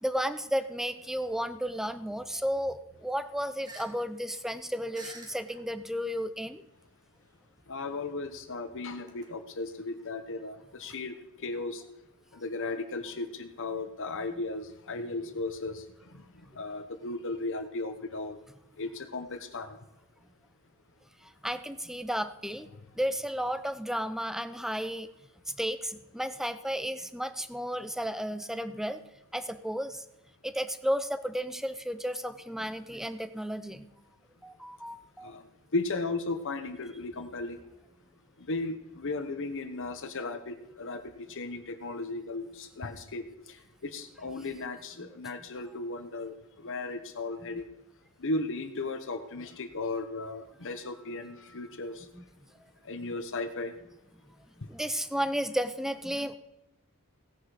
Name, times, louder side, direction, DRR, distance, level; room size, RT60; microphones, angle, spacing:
voice 1, 0.0-6.6 21.4-22.7 23.0-25.1 25.6-29.0 29.3-30.0 30.4-33.8 34.4-35.3 45.0-45.1 47.5-47.6 52.1-52.2 53.0-53.1 54.7-56.3, equal, ahead, 12 dB, 0.7 m, -33 dB
sound 1, 3.6-3.9 4.2-4.3 4.9-5.6 6.4-6.5 7.5-9.3, right 2 dB, 20° right, 2.3 m, -48 dB
voice 2, 7.7-11.1 11.4-11.8 12.4-15.8 16.6-18.4 18.8-19.8 35.2-35.4 35.7-37.6 38.5-43.2 43.8-46.3 46.6-47.7 48.2-52.0 52.9-53.7, left 3 dB, 60° left, 8 dB, 1.1 m, -35 dB
17.0 x 10.0 x 5.0 m, 0.91 s
head